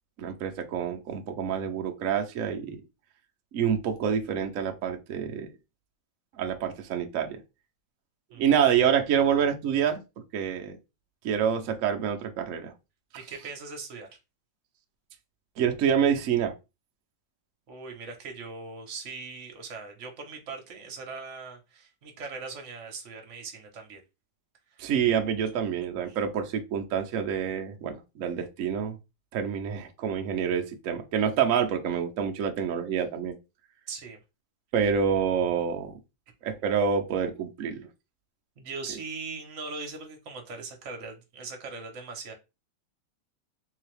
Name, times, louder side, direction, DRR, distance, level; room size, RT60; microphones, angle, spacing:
voice 1, 0.2-2.8 3.5-5.5 6.4-7.4 8.4-10.0 10.3-10.8 11.2-12.7 15.6-16.5 24.8-29.0 29.3-33.4 34.7-36.0 36.4-37.9, right 8 dB, 65° right, 0.8 m, -27 dB
voice 2, 13.1-14.1 17.7-24.0 24.8-24.9 26.1-26.2 33.9-34.2 38.6-42.3, right 4 dB, 50° right, 1.1 m, -40 dB
3.8 x 2.8 x 3.2 m
omnidirectional pair, 2.0 m